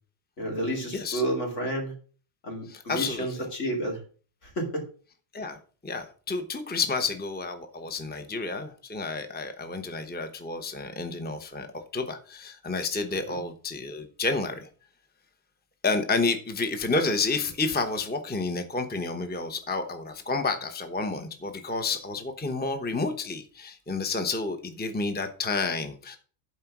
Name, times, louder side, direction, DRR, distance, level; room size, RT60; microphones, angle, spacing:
voice 1, 0.4-1.9 2.4-4.0 4.4-4.8 13.1-13.4, right 1 dB, 75° left, 0 dB, 2.9 m, -31 dB
voice 2, 2.7-3.4 5.3-14.7 15.8-26.2, left 3 dB, 10° left, 7 dB, 0.9 m, -30 dB
11.5 x 4.5 x 6.0 m, 0.41 s
omnidirectional pair, 1.2 m